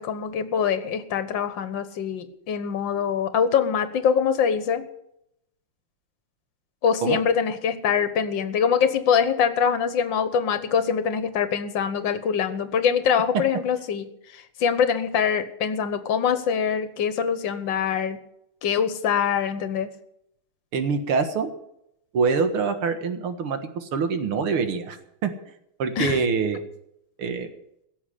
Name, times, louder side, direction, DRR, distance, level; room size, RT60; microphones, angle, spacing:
voice 1, 0.0-4.9 6.8-18.2 18.6-19.9 26.0-26.2, left 7 dB, 65° left, 12 dB, 1.8 m, -24 dB
voice 2, 20.7-21.5 22.1-25.0 25.2-25.3 25.8-26.6 27.2-27.5, right 5 dB, 85° right, 8 dB, 2.4 m, -25 dB
16.5 x 7.3 x 10.0 m, 0.79 s
omnidirectional pair, 2.3 m